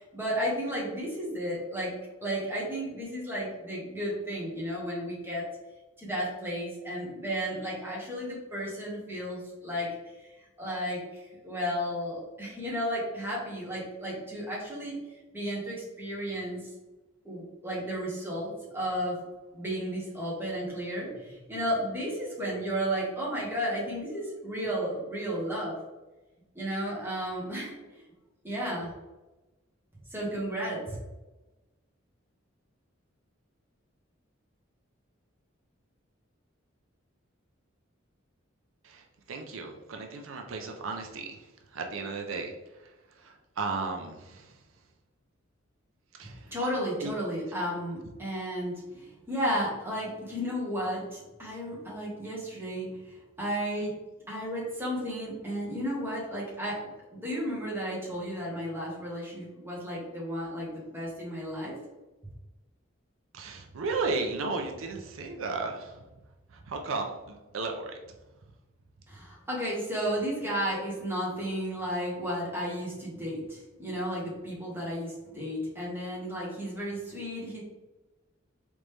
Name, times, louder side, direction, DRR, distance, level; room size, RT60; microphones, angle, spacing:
voice 1, 0.0-1.9 2.2-5.4 6.0-9.9 10.6-15.0 15.3-16.6 17.2-19.2 19.5-25.8 26.5-28.0 28.4-28.9 30.1-31.0 46.2-53.9 54.3-56.8 57.1-61.7 69.1-77.6, equal, 10° right, -6 dB, 1.4 m, -33 dB
voice 2, 38.8-44.6 46.2-46.5 47.0-47.1 63.3-66.0 66.5-68.0, right 3 dB, 85° right, 3 dB, 0.5 m, -35 dB
3.9 x 3.4 x 3.3 m, 1.1 s
head